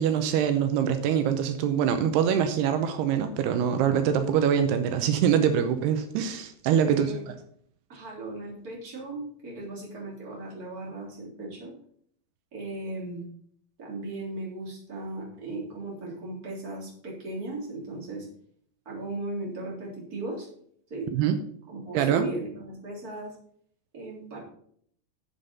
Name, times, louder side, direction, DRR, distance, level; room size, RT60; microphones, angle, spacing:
voice 1, 0.0-7.1 21.1-21.4 21.9-22.3, right 8 dB, 85° right, 8 dB, 2.8 m, -24 dB
voice 2, 6.8-7.3 7.9-11.7 12.5-13.2 13.8-18.3 18.8-20.5 20.9-21.1 21.7-23.3 23.9-24.4, right 2 dB, 25° right, -4 dB, 3.5 m, -37 dB
8.6 x 7.4 x 5.5 m, 0.62 s
omnidirectional pair, 4.6 m